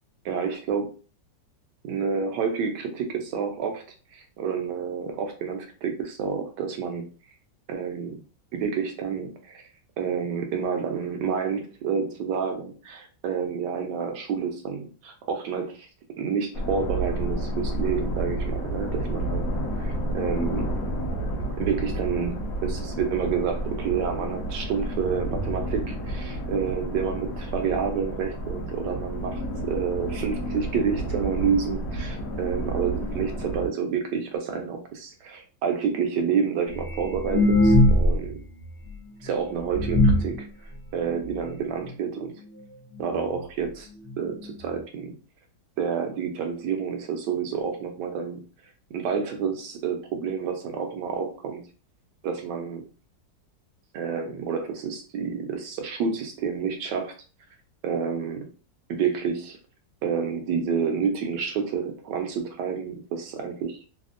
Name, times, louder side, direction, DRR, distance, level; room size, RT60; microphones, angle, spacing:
voice 1, 0.2-0.9 1.8-3.8 4.1-7.1 7.7-8.2 8.5-9.7 10.0-15.9 16.2-19.5 19.8-20.7 21.6-38.4 39.2-40.5 40.9-42.3 43.0-43.9 44.2-45.1 45.8-48.4 48.9-51.6 52.2-52.8 53.9-57.1 57.8-58.5 58.9-59.6 60.0-63.7, right 6 dB, 75° right, 4 dB, 1.0 m, -29 dB
sound 1, 16.5-33.7, right 1 dB, 70° left, 0.9 m, -30 dB
sound 2, 36.7-38.3 38.6-38.7 39.3-39.4 39.7-40.4 41.1-41.2 41.5-41.6 41.9-42.2 43.0-43.1 43.4-43.5 44.1-44.2 44.4-44.5, left 1 dB, 85° left, 0.6 m, -20 dB
3.4 x 2.0 x 2.4 m, 0.36 s
omnidirectional pair, 2.1 m